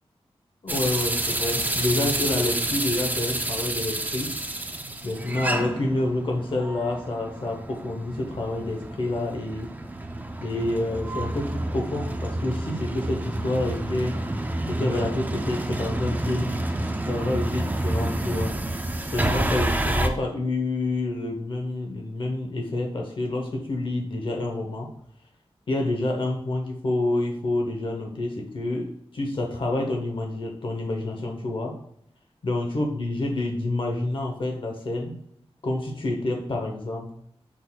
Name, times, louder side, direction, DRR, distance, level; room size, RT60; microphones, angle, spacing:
voice 1, 0.6-4.3 5.0-9.7 10.4-14.2 14.7-16.6 17.1-18.5 19.1-24.9 25.7-31.7 32.4-35.2 35.6-37.2, left 2 dB, 55° left, 1 dB, 0.8 m, -28 dB
sound 1, 0.7-20.1, right 1 dB, 15° right, 0.4 m, -29 dB
5.9 x 3.8 x 2.3 m, 0.70 s
wide cardioid pair, 125°, 10 cm